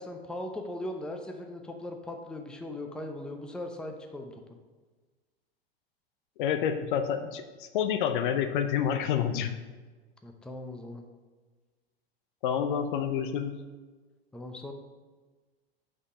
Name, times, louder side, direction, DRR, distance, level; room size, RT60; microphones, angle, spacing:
voice 1, 0.0-4.4 10.2-11.0 14.3-14.7, left 1 dB, 5° left, 4 dB, 0.6 m, -39 dB
voice 2, 6.4-7.4 7.7-9.5 12.4-13.5, left 8 dB, 55° left, 9 dB, 0.7 m, -28 dB
6.5 x 5.3 x 4.9 m, 1.3 s
figure-of-eight pair, 90°, 31 cm